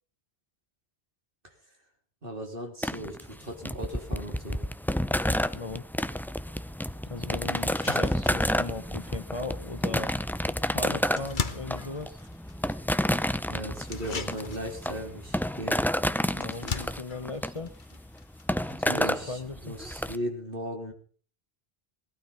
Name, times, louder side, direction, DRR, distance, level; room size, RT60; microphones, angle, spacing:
voice 1, 2.2-4.6 13.5-15.8 18.7-20.9, equal, 60° right, 2 dB, 3.9 m, -37 dB
sound 1, 2.8-20.2, equal, 5° left, 0.4 m, -30 dB
voice 2, 5.5-5.8 7.1-10.1 10.6-12.2 16.3-17.7 18.8-19.7, left 3 dB, 35° left, 11 dB, 0.9 m, -37 dB
sound 2, 6.5-6.6 7.1-7.2 7.6-19.2, left 5 dB, 50° left, 1.3 m, -41 dB
19.0 x 12.0 x 5.6 m, 0.44 s
omnidirectional pair, 1.1 m